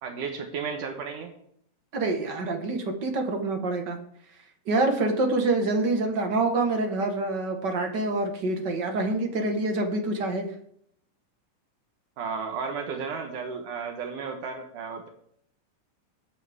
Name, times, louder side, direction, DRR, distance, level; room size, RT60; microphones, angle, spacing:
voice 1, 0.0-1.3 12.2-15.1, right 5 dB, 70° right, 4 dB, 2.7 m, -33 dB
voice 2, 1.9-4.0 4.6-10.5, right 2 dB, 45° right, 4 dB, 1.4 m, -26 dB
21.0 x 8.5 x 3.6 m, 0.68 s
omnidirectional pair, 3.9 m